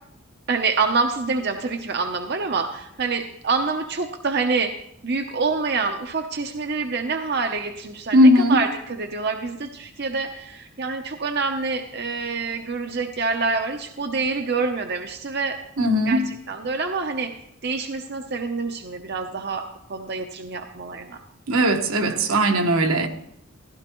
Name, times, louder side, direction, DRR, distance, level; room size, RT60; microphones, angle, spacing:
voice 1, 0.5-15.6 16.1-17.3 17.6-19.6 19.9-21.2, right 4 dB, 50° right, 0.7 m, -26 dB
voice 2, 8.1-8.6 15.8-16.2 21.5-23.1, equal, 80° right, 1.3 m, -18 dB
15.5 x 12.0 x 3.0 m
head